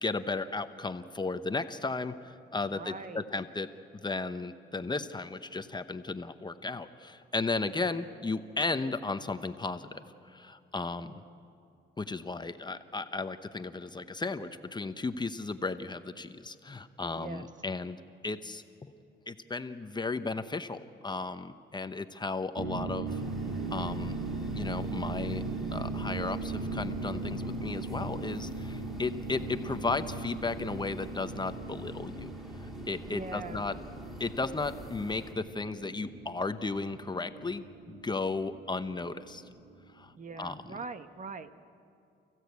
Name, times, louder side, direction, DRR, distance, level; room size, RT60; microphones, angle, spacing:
voice 1, 0.0-3.7 4.0-10.0 10.3-11.2 12.0-18.9 19.3-23.2 23.7-24.2 24.5-25.4 25.7-32.3 32.9-33.7 34.2-39.4 40.0-40.1 40.4-40.6, left 3 dB, 20° left, 9 dB, 0.9 m, -35 dB
voice 2, 2.7-3.3 7.7-8.0 17.1-17.5 33.1-33.9 40.1-41.6, right 4 dB, 40° right, 9 dB, 1.2 m, -42 dB
sound 1, 22.6-39.7, right 3 dB, 65° right, 3.1 m, -38 dB
sound 2, 23.1-35.3, left 1 dB, ahead, 3.5 m, -47 dB
29.0 x 15.5 x 8.3 m, 2.6 s
cardioid pair, 90°, 20 cm